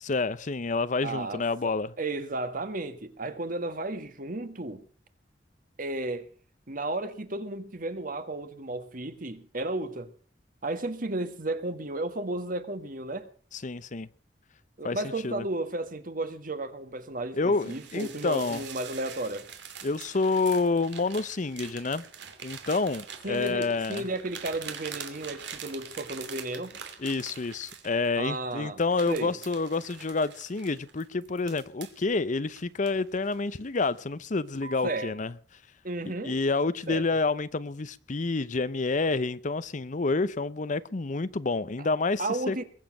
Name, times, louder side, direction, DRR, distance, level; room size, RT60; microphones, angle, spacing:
voice 1, 0.0-1.9 13.5-14.1 14.8-15.4 17.3-18.6 19.8-22.0 22.4-24.1 27.0-35.3 36.2-42.6, left 3 dB, 45° left, 0.7 m, -28 dB
voice 2, 1.0-4.8 5.8-6.3 6.7-10.1 10.6-13.3 14.8-19.5 23.2-26.7 28.2-28.8 29.1-29.3 34.8-35.1 35.8-36.4 36.9-37.0 41.8-41.9 42.2-42.6, right 2 dB, 50° right, 1.8 m, -33 dB
sound 1, 17.5-28.3 28.8-32.0 32.6-33.5 33.8-34.1 34.5-35.1, right 7 dB, 85° right, 2.8 m, -44 dB
22.0 x 7.5 x 7.6 m
head